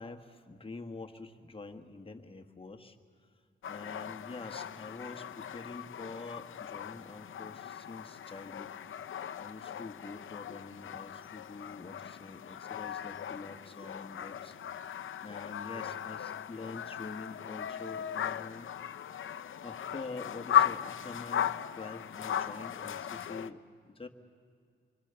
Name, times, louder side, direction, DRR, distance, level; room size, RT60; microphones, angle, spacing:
voice 1, 0.0-3.0 3.7-8.7 9.3-14.5 15.2-18.7 19.6-24.1, left 3 dB, 30° left, 3 dB, 1.5 m, -46 dB
sound 1, 3.6-23.5, left 10 dB, 90° left, 0.6 m, -37 dB
26.0 x 24.5 x 7.0 m, 2.3 s
wide cardioid pair, 125°, 20 cm